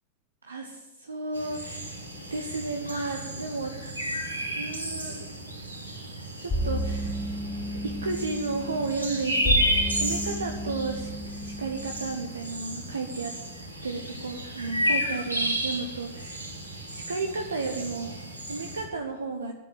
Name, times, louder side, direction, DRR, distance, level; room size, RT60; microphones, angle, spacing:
voice 1, 0.4-2.0 2.3-3.9 4.5-5.2 6.4-7.2 7.6-11.1 11.4-13.3 13.8-16.5 16.9-18.2 18.4-19.5, right 3 dB, 75° right, 4 dB, 1.2 m, -33 dB
sound 1, 1.3-18.8, equal, 90° left, 3.5 m, -32 dB
sound 2, 6.5-12.2, equal, 20° left, 2.5 m, -32 dB
13.5 x 10.0 x 7.8 m, 1.1 s
figure-of-eight pair, 90°, 0 cm